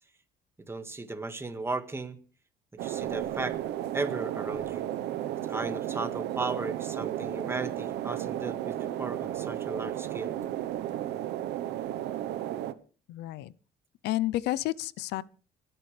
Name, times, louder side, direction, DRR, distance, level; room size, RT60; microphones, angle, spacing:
voice 1, 0.7-2.2 2.8-3.6 3.9-4.9 5.5-10.3, right 3 dB, 15° right, 1.8 m, -35 dB
sound 1, 2.8-12.7, right 12 dB, 80° right, 1.0 m, -33 dB
voice 2, 13.1-13.5 14.0-15.2, left 16 dB, 85° left, 0.7 m, -30 dB
29.5 x 10.5 x 3.3 m
cardioid pair, 110°, 17 cm